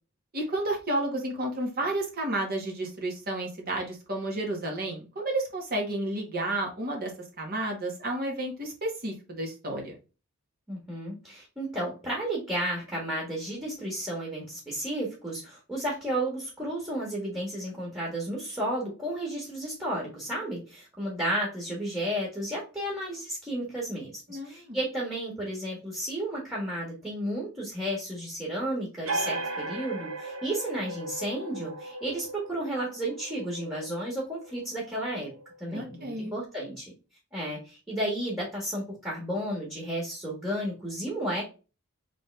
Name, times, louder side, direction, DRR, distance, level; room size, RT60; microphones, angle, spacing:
voice 1, 0.3-7.1 7.4-9.9 24.3-24.8 35.7-36.3, right 1 dB, 45° right, 1 dB, 1.5 m, -31 dB
voice 2, 10.7-35.3 35.6-36.9 37.3-41.4, right 1 dB, 10° right, -4 dB, 1.6 m, -33 dB
sound 1, 29.0-36.3, right 2 dB, 80° right, 1.0 m, -37 dB
3.7 x 3.6 x 3.3 m, 0.32 s
head